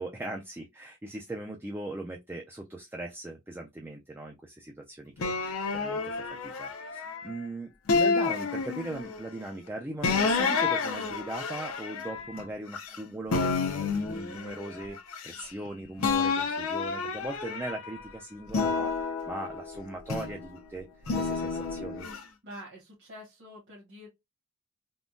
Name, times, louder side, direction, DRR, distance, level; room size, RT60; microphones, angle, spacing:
voice 1, 0.0-15.0 15.2-20.9 21.2-22.1, right 1 dB, 10° right, 0.3 m, -39 dB
sound 1, 5.2-7.3 7.9-9.2 10.0-13.0 13.3-15.7 16.0-18.0 18.5-20.5 21.1-22.2, left 4 dB, 65° left, 0.5 m, -30 dB
voice 2, 22.4-24.1, equal, 50° right, 1.3 m, -46 dB
3.6 x 2.1 x 2.5 m
head